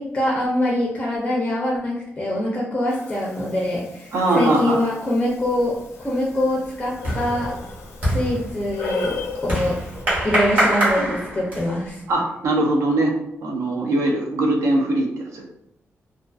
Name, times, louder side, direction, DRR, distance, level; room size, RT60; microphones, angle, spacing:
voice 1, 0.0-4.1 4.3-7.5 8.1-9.2 9.4-9.7 10.2-12.0, left 1 dB, 15° left, -4 dB, 0.4 m, -24 dB
Breathing, 2.9-10.0, left 4 dB, 85° left, 0.4 m, -36 dB
voice 2, 4.1-4.8 12.1-13.1 13.4-15.4, right 2 dB, 75° right, 0 dB, 0.5 m, -21 dB
sound 1, 5.4-5.8 6.1-11.9, right 1 dB, 35° right, 1.0 m, -25 dB
2.5 x 2.3 x 2.3 m, 0.79 s
wide cardioid pair, 175°, 5 cm